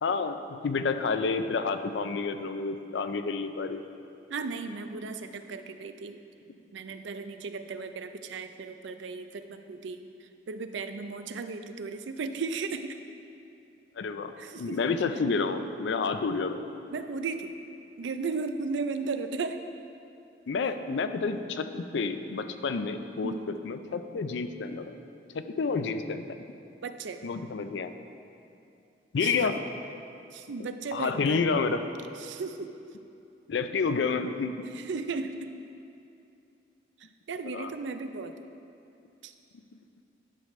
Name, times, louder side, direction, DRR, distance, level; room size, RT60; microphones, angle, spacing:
voice 1, 0.0-3.8 14.0-16.6 20.5-23.3 23.6-24.9 25.3-26.3 27.2-27.9 29.1-29.6 30.9-31.8 33.5-34.5 37.4-37.7, left 4 dB, 70° left, 9 dB, 0.4 m, -29 dB
voice 2, 4.3-6.2 6.7-10.1 10.5-12.9 14.4-14.8 16.9-17.6 18.0-19.6 23.2-23.6 26.8-27.2 29.2-29.3 30.3-31.4 32.2-32.7 34.8-35.5 37.3-38.3 39.2-39.3, right 4 dB, 75° right, 9 dB, 0.4 m, -35 dB
11.5 x 6.5 x 3.2 m, 2.6 s
head